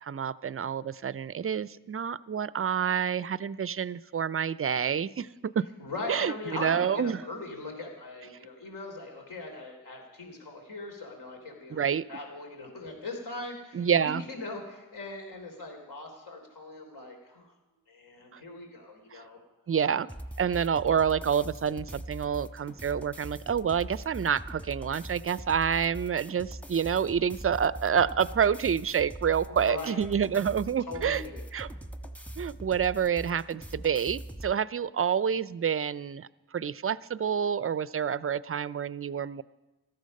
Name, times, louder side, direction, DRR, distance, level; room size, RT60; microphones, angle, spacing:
voice 1, 0.0-5.7 6.1-7.2 11.7-12.0 13.7-14.2 18.3-18.4 19.1-19.2 19.7-20.1 20.4-31.2 31.5-31.7 32.4-36.3 36.5-39.4, right 7 dB, 30° right, 18 dB, 0.5 m, -28 dB
voice 2, 5.8-11.8 12.1-17.5 17.9-19.4 29.5-30.0 30.9-31.4, left 2 dB, 65° left, 2 dB, 3.3 m, -40 dB
sound 1, 20.1-34.5, right 1 dB, 5° left, 1.3 m, -42 dB
14.5 x 13.0 x 5.4 m, 1.1 s
supercardioid pair, 45°, 43 cm